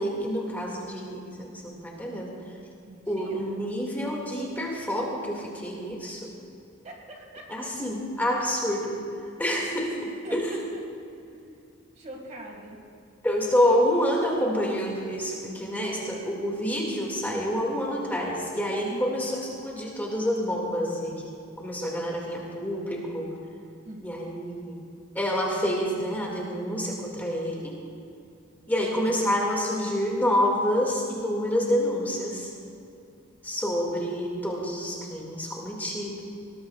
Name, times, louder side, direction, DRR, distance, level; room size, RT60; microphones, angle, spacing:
voice 1, 0.0-2.4 3.1-6.3 7.5-9.0 9.4-10.5 13.2-21.3 21.6-23.3 24.0-24.8 25.1-27.8 28.7-32.5 33.4-36.3, equal, 10° left, -2 dB, 1.9 m, -28 dB
voice 2, 2.8-3.6 6.8-7.7 10.2-10.8 11.3-11.6 12.0-12.8 18.9-19.0 23.9-24.4 28.9-29.2, right 1 dB, 35° right, 1 dB, 1.7 m, -43 dB
20.0 x 19.0 x 2.3 m, 2.6 s
head